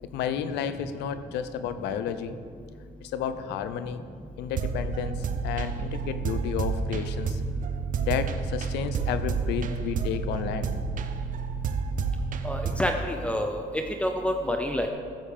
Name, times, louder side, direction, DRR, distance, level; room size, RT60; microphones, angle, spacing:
voice 1, 0.0-2.4 3.0-4.0 4.4-7.4 8.0-10.7, left 8 dB, 85° left, 12 dB, 0.8 m, -32 dB
sound 1, 4.5-12.9, right 5 dB, 50° right, 0.9 m, -30 dB
voice 2, 12.4-13.6 14.0-14.9, left 1 dB, 5° left, 4 dB, 0.8 m, -28 dB
14.5 x 7.3 x 6.8 m, 2.2 s
cardioid pair, 110°, 17 cm